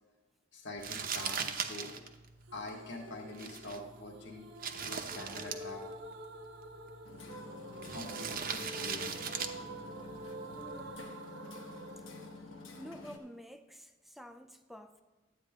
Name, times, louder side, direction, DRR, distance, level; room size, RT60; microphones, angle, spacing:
voice 1, 0.5-1.9 2.5-4.4 4.8-5.8 7.9-9.2, left 2 dB, 65° left, 0 dB, 1.4 m, -45 dB
Crumpling crinkling, 0.8-11.0, right 6 dB, 50° right, 0.8 m, -41 dB
sound 1, 2.5-13.4, right 1 dB, 70° right, 1.0 m, -48 dB
Hammer, 7.0-13.2, left 3 dB, 90° left, 1.2 m, -49 dB
voice 2, 10.6-11.2 12.8-15.0, equal, ahead, 8 dB, 0.4 m, -50 dB
12.0 x 8.8 x 3.6 m, 1.2 s
head